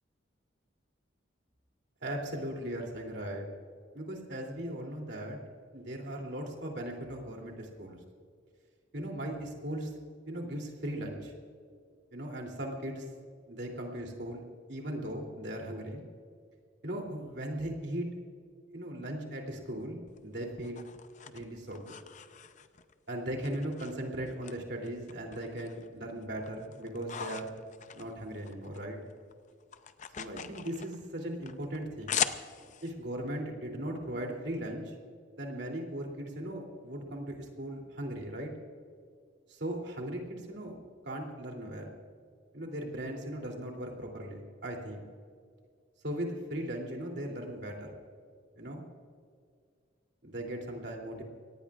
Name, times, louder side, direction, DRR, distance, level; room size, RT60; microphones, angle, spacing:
voice 1, 2.0-3.5 3.9-5.4 5.7-8.0 8.9-9.9 10.3-11.3 12.1-13.1 13.5-14.4 14.7-16.0 16.8-18.1 18.7-20.8 21.2-21.9 23.1-27.5 27.9-29.0 30.2-32.2 32.8-34.9 35.4-38.5 39.5-40.7 41.0-41.9 42.5-45.1 46.0-47.9 48.6-48.8 50.2-51.2, right 1 dB, 60° right, 1 dB, 3.0 m, -38 dB
sound 1, 20.1-22.9 23.4-24.5 24.8-25.9 26.2-28.8 29.1-32.9, left 8 dB, 40° left, 0.6 m, -40 dB
24.5 x 18.5 x 2.5 m, 2.1 s
head